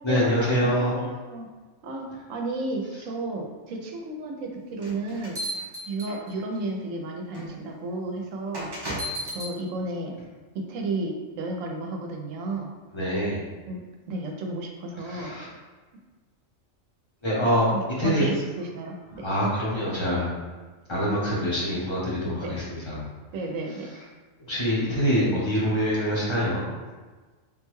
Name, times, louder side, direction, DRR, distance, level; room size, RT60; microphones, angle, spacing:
voice 1, 0.0-1.0 12.9-13.4 15.1-15.5 17.2-17.7 18.0-18.3 19.2-20.3 20.9-23.0 24.5-26.7, equal, 30° left, -7 dB, 0.7 m, -25 dB
voice 2, 0.6-1.5 1.8-5.4 5.9-8.7 9.2-10.2 10.5-12.7 13.7-15.3 17.7-19.3 22.4-22.6 23.3-23.9, right 2 dB, 80° right, 1 dB, 0.9 m, -33 dB
sound 1, 4.8-6.6 7.3-7.5 8.5-9.5, equal, 35° right, 0.4 m, -34 dB
3.6 x 2.2 x 3.0 m, 1.3 s
omnidirectional pair, 1.3 m